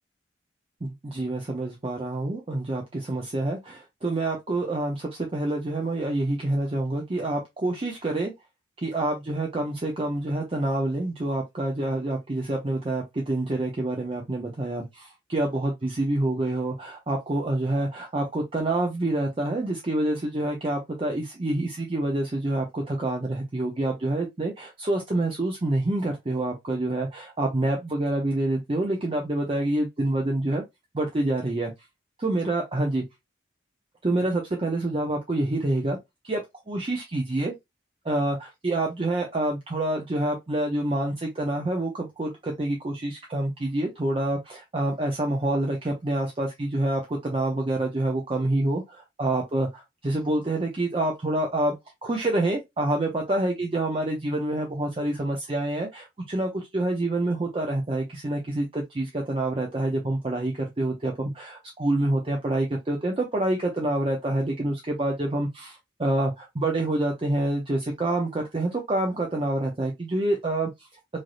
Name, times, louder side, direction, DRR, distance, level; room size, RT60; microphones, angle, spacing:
voice 1, 0.8-8.3 8.8-30.6 30.9-31.7 32.2-33.0 34.0-36.0 36.2-36.4 36.7-37.5 38.0-51.7 52.0-70.9, right 1 dB, 30° right, 0.5 m, -27 dB
3.2 x 2.6 x 2.3 m
head